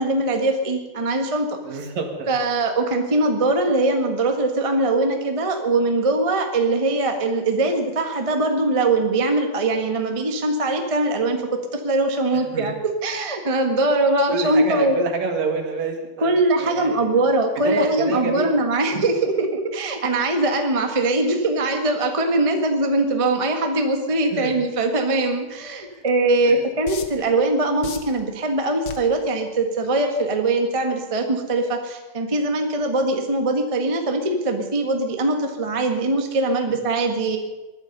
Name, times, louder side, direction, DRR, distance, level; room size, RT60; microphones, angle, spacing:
voice 1, 0.0-1.5 1.7-1.8 2.3-15.0 16.2-37.4, right 2 dB, 20° right, 3 dB, 0.9 m, -22 dB
voice 2, 1.6-2.4 12.5-12.7 14.3-17.2 17.6-18.8 24.3-24.5 25.9-26.0 26.4-26.6 36.7-36.8, right 4 dB, 65° right, 4 dB, 3.2 m, -27 dB
sound 1, 26.1-26.2 26.9-27.3 27.8-28.2 28.9-29.2 29.8-30.0, left 6 dB, 55° left, 1.6 m, -33 dB
21.5 x 12.0 x 5.5 m, 1.2 s
omnidirectional pair, 3.5 m